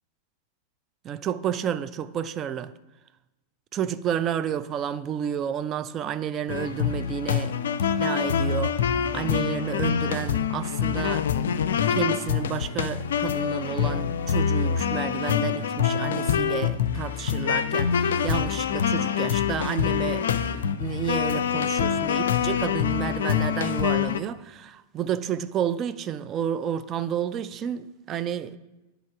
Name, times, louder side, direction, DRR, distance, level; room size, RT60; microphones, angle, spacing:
voice 1, 1.0-2.7 3.7-7.5 8.0-8.8 9.1-11.3 11.9-20.3 20.5-28.6, right 9 dB, 30° right, 0.3 m, -31 dB
sound 1, 6.5-24.2, left 8 dB, 65° left, 0.3 m, -25 dB
10.0 x 3.3 x 4.7 m
figure-of-eight pair, 90°, 0 cm